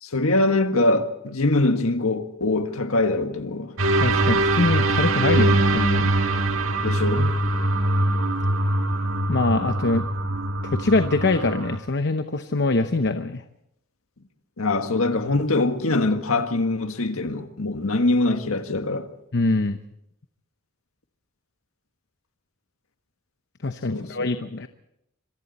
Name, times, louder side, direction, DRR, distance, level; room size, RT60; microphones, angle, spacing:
voice 1, 0.0-3.7 6.8-7.4 14.6-19.1 23.9-24.3, left 2 dB, 80° left, 1.8 m, -23 dB
sound 1, 3.8-11.8, right 2 dB, 70° right, 1.8 m, -22 dB
voice 2, 4.0-6.1 9.3-10.1 10.6-13.4 19.3-19.8 23.6-24.7, left 3 dB, 55° left, 0.9 m, -23 dB
26.0 x 23.5 x 4.2 m
head